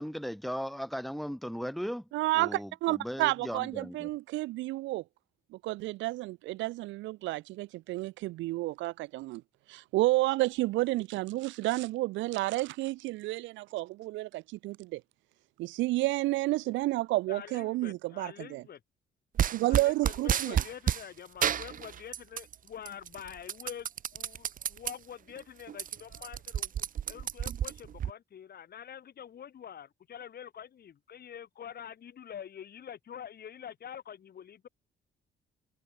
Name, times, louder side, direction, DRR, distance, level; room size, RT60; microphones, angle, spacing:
voice 1, 0.0-2.1 2.3-4.1, equal, ahead, 5.4 m, -37 dB
voice 2, 2.1-5.0 5.5-9.4 9.7-15.0 15.6-18.6 19.5-20.6, right 19 dB, 85° right, 0.5 m, -31 dB
voice 3, 17.3-18.8 19.7-34.7, left 9 dB, 55° left, 4.8 m, -46 dB
sound 1, 19.4-21.0 21.4-22.5 22.9-24.9 25.4-25.5 25.7-28.1, right 9 dB, 45° right, 0.7 m, -31 dB
cardioid pair, 95°, 19 cm